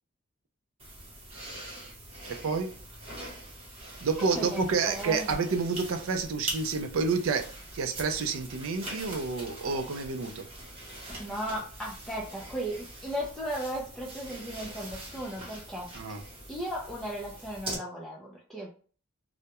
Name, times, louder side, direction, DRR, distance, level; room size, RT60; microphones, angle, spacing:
sound 1, 0.8-17.8, right 1 dB, 25° right, 0.8 m, -43 dB
voice 1, 2.3-2.7 4.0-7.5 7.7-10.5 15.9-16.2, right 4 dB, 80° right, 7 dB, 0.4 m, -29 dB
voice 2, 4.3-5.3 11.0-16.2 16.5-18.7, equal, ahead, -5 dB, 0.4 m, -36 dB
2.2 x 2.1 x 2.8 m, 0.41 s
head